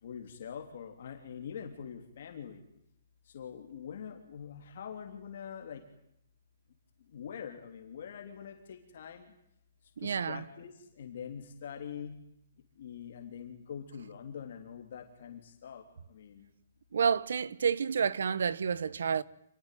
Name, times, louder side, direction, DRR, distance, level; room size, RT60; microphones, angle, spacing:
voice 1, 0.0-2.6 3.2-5.8 7.1-9.3 10.0-12.2 12.8-16.5, left 7 dB, 45° left, 3.3 m, -44 dB
voice 2, 10.0-10.4 16.9-19.2, right 6 dB, 75° right, 1.3 m, -29 dB
28.0 x 21.5 x 9.3 m
hypercardioid pair, 180°, 0 cm